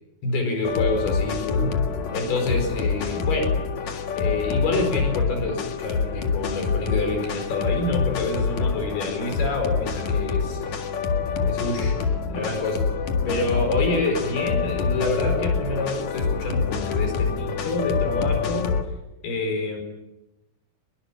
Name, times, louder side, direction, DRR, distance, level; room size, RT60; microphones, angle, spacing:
voice 1, 0.2-1.7 2.1-3.5 4.2-10.7 11.4-12.8 13.3-18.7 19.2-19.8, left 2 dB, 85° left, 4 dB, 6.7 m, -27 dB
sound 1, 0.6-18.8, left 5 dB, 55° left, 2.9 m, -26 dB
29.0 x 22.5 x 7.4 m, 0.93 s
omnidirectional pair, 4.4 m